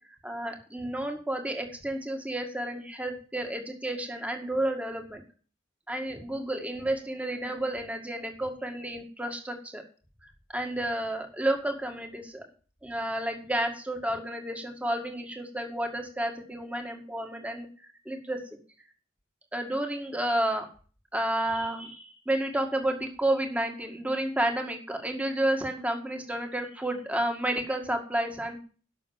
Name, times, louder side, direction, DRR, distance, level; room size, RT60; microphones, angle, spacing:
voice 1, 0.2-5.2 5.9-9.8 10.5-12.4 12.8-17.7 18.1-18.4 19.5-20.7 21.1-28.6, right 1 dB, 5° right, 4 dB, 2.0 m, -31 dB
11.5 x 6.6 x 7.1 m, 0.39 s
head